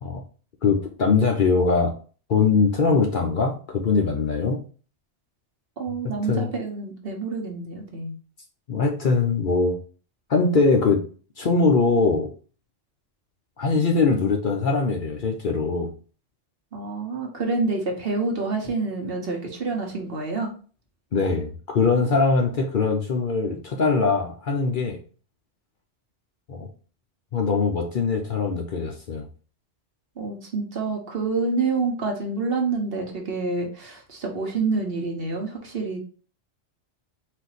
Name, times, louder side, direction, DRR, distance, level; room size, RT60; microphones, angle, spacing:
voice 1, 0.6-1.9 2.3-4.6 6.3-6.5 8.7-9.8 10.3-11.0 11.4-12.3 13.6-15.9 21.1-25.0 26.5-26.7 27.3-29.3, left 4 dB, 50° left, 2 dB, 0.7 m, -22 dB
voice 2, 5.8-8.1 16.7-20.5 30.2-36.0, right 3 dB, 55° right, 2 dB, 1.2 m, -27 dB
4.2 x 2.6 x 4.0 m, 0.39 s
omnidirectional pair, 1.2 m